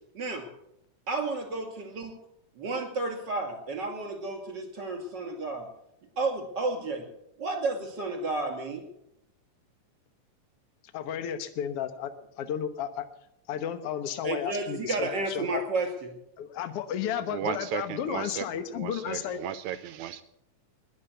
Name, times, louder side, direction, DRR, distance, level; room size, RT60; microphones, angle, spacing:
voice 1, 1.1-2.1 2.6-5.7 6.2-7.0 7.4-8.8 14.2-16.1, right 3 dB, 35° right, 4 dB, 2.7 m, -31 dB
voice 2, 10.9-13.1 13.5-15.6 16.4-19.4, left 9 dB, 65° left, 10 dB, 1.5 m, -33 dB
voice 3, 17.2-20.2, right 10 dB, 80° right, 13 dB, 1.7 m, -35 dB
20.5 x 7.5 x 8.1 m, 0.79 s
omnidirectional pair, 4.0 m